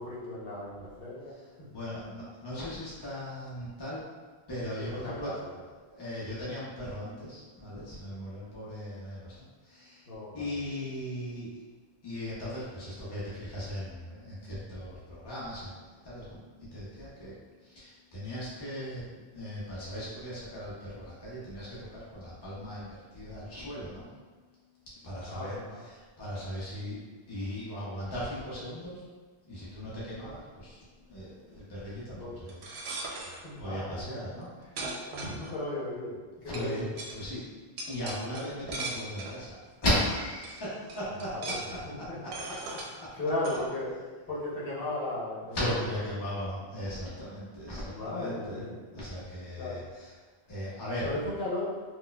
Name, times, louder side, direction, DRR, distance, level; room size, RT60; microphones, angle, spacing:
voice 1, 0.0-1.3 3.0-3.2 4.7-5.5 10.1-10.6 25.3-25.8 32.2-32.3 33.2-34.2 34.6-36.2 36.4-36.8 41.3-42.2 42.8-46.5 47.8-48.7 49.6-49.8 51.0-51.7, left 1 dB, 65° left, -7 dB, 1.0 m, -36 dB
voice 2, 1.7-4.0 4.5-5.3 5.8-10.1 10.3-11.5 12.0-15.7 16.0-17.4 17.6-19.0 19.3-24.0 25.0-27.0 27.3-29.0 29.4-33.2 33.6-34.5 34.8-34.9 36.5-37.4 37.9-39.5 39.8-41.3 41.7-42.1 42.4-43.1 43.5-43.6 45.5-48.6 48.9-50.1 50.5-51.1, left 1 dB, 25° left, -8 dB, 0.7 m, -37 dB
sound 1, 32.5-33.4 34.3-34.4 34.8-35.8 36.5-36.7 37.0-37.2 37.8-39.4 40.0-40.1 40.4-40.6 40.9-41.8 42.3-42.9 43.4-43.6, right 2 dB, 80° right, 0.8 m, -38 dB
4.1 x 2.4 x 2.2 m, 1.4 s
omnidirectional pair, 1.1 m